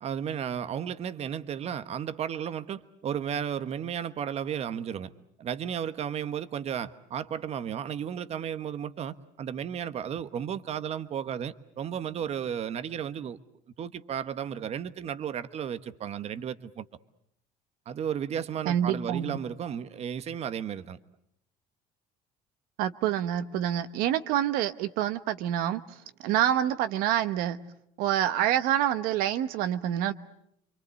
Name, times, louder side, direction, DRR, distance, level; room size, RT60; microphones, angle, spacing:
voice 1, 0.0-5.1 5.4-13.4 13.8-16.8 17.9-21.0, right 8 dB, 45° right, 13 dB, 1.2 m, -34 dB
voice 2, 18.7-19.4 22.8-25.8 26.2-27.6 28.0-30.1, right 11 dB, 80° right, 12 dB, 1.1 m, -27 dB
28.5 x 24.0 x 8.2 m, 0.74 s
cardioid pair, 105°, 15 cm